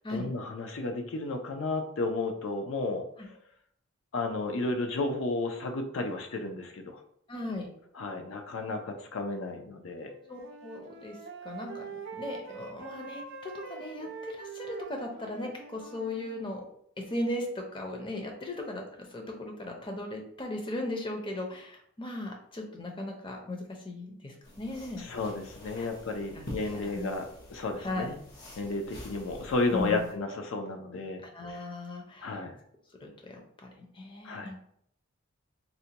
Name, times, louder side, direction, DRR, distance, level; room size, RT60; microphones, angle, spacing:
voice 1, 0.1-3.3 4.1-7.0 8.0-10.1 25.0-28.2 28.6-31.2 31.5-31.6 32.2-32.6 34.2-34.5, left 3 dB, 75° left, 4 dB, 0.5 m, -33 dB
voice 2, 7.3-7.7 10.3-11.2 11.4-11.8 12.2-16.6 17.0-25.0 25.8-25.9 26.3-26.4 26.7-27.1 27.8-28.1 29.7-30.0 31.3-32.4 33.0-34.6, left 1 dB, 25° left, 1 dB, 0.6 m, -37 dB
Wind instrument woodwind instrument, 10.0-16.5, right 5 dB, 65° right, 0.4 m, -44 dB
sound 1, 24.4-30.1, left 1 dB, 55° left, 0.9 m, -47 dB
4.0 x 2.1 x 2.8 m, 0.68 s
head